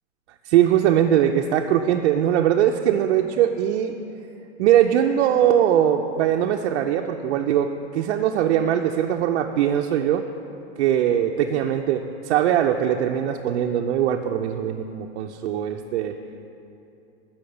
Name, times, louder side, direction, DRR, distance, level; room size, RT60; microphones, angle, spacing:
voice 1, 0.5-3.9 4.6-10.3 10.8-16.2, right 10 dB, 75° right, 3 dB, 0.6 m, -21 dB
8.5 x 5.7 x 7.8 m, 2.8 s
supercardioid pair, 155°, 33 cm